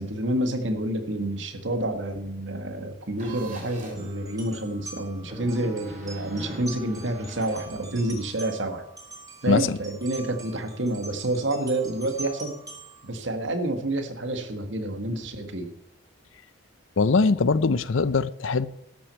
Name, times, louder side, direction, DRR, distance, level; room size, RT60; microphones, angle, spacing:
voice 1, 0.0-8.8 9.4-12.6 13.0-15.7, right 1 dB, 65° right, 1.7 m, -28 dB
sound 1, 3.2-4.1 5.2-8.3, right 1 dB, 35° right, 3.4 m, -42 dB
sound 2, 4.0-13.1, right 2 dB, 15° right, 2.8 m, -44 dB
voice 2, 17.0-18.7, left 4 dB, 75° left, 0.6 m, -21 dB
12.5 x 6.3 x 8.1 m
head